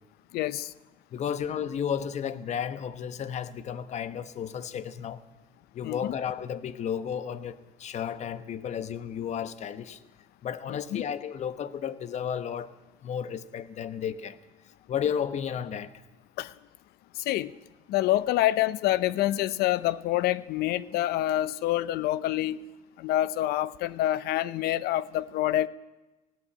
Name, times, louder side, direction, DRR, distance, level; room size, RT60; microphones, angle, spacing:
voice 1, 0.3-0.7 5.8-6.1 10.9-11.0 16.4-16.5 17.2-17.5 17.9-22.6 23.0-25.7, left 14 dB, 70° left, 0.8 m, -27 dB
voice 2, 1.1-5.2 5.7-10.0 10.4-12.7 13.0-14.4 14.9-16.0, left 8 dB, 45° left, 1.1 m, -33 dB
18.5 x 16.5 x 8.7 m
cardioid pair, 130°, 17 cm